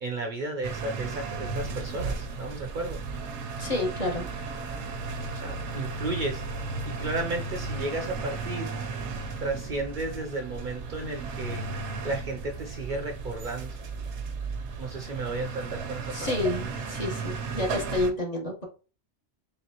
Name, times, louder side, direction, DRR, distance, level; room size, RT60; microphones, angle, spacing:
voice 1, 0.0-3.0 5.2-6.4 6.8-8.7 9.4-11.6 12.0-13.8 14.8-16.1, right 2 dB, 50° right, 3 dB, 0.7 m, -33 dB
sound 1, 0.6-18.1, right 4 dB, 75° right, 1.0 m, -35 dB
voice 2, 3.6-4.3 16.1-18.7, left 2 dB, 35° left, 0 dB, 1.1 m, -29 dB
4.2 x 3.5 x 2.8 m, 0.33 s
omnidirectional pair, 1.2 m